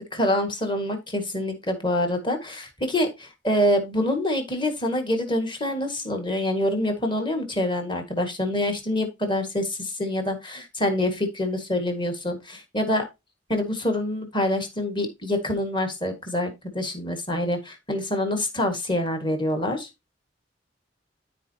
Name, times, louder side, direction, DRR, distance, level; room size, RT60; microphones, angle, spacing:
voice 1, 0.1-13.0 13.5-19.9, left 1 dB, 25° left, 5 dB, 1.8 m, -26 dB
13.0 x 4.6 x 2.8 m, 0.22 s
head